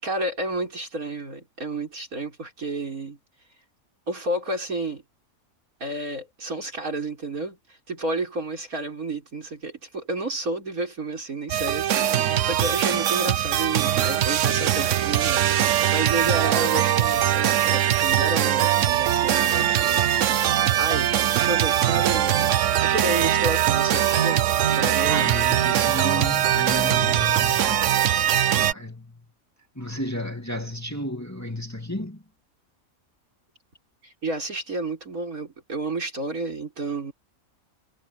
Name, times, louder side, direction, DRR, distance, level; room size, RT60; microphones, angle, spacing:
voice 1, 0.0-3.2 4.1-5.0 5.8-20.1 20.8-22.5 22.8-25.3 34.0-37.1, right 2 dB, 80° right, 5.4 m, -31 dB
sound 1, 11.5-28.7, right 11 dB, 65° right, 1.0 m, -21 dB
voice 2, 25.0-27.9 28.5-29.3 29.8-32.2, left 1 dB, 10° left, 2.6 m, -33 dB
omnidirectional pair, 1.5 m